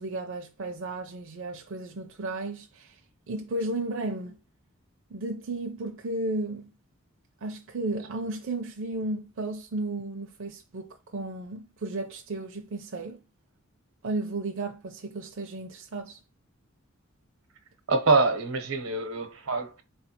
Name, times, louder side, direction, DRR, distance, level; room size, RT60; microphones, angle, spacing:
voice 1, 0.0-3.0 3.3-4.3 5.1-6.7 7.4-13.2 14.0-16.2, right 2 dB, 60° right, 0.5 m, -34 dB
voice 2, 17.9-19.8, right 3 dB, 90° right, 0.9 m, -25 dB
4.3 x 3.2 x 2.9 m
head